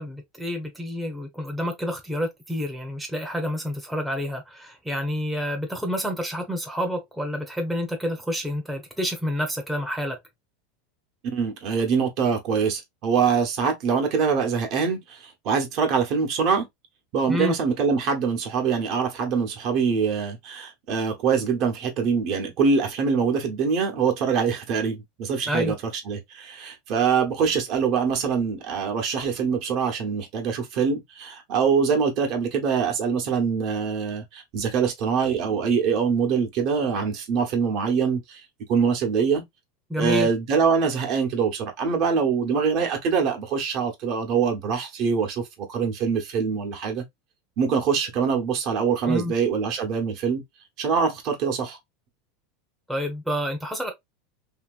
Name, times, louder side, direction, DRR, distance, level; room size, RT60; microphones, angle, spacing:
voice 1, 0.0-10.2 17.3-17.6 25.5-25.8 39.9-40.3 49.1-49.3 52.9-53.9, equal, ahead, 0.8 m, -28 dB
voice 2, 11.3-16.7 17.1-25.8 26.0-38.4 38.7-39.4 40.0-47.0 47.6-50.4 50.8-51.8, right 6 dB, 50° right, 1.0 m, -24 dB
2.8 x 2.8 x 2.3 m
supercardioid pair, 135°, 0 cm